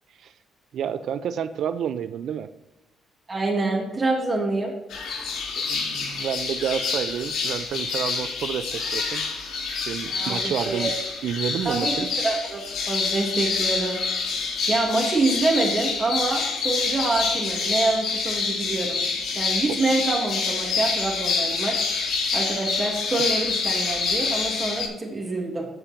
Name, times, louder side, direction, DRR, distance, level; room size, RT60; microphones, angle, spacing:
voice 1, 0.7-2.5 5.7-9.2 9.9-10.9 11.2-12.1, right 8 dB, 70° right, 12 dB, 0.6 m, -29 dB
voice 2, 3.3-4.7 10.1-10.9 11.6-11.9 12.2-12.6 12.9-14.0 14.7-19.0 19.3-21.8 22.3-25.7, right 2 dB, 30° right, -2 dB, 2.7 m, -26 dB
sound 1, 4.9-24.9, left 4 dB, 80° left, 3.7 m, -27 dB
14.0 x 5.1 x 4.5 m, 0.98 s
cardioid pair, 90°, 0 cm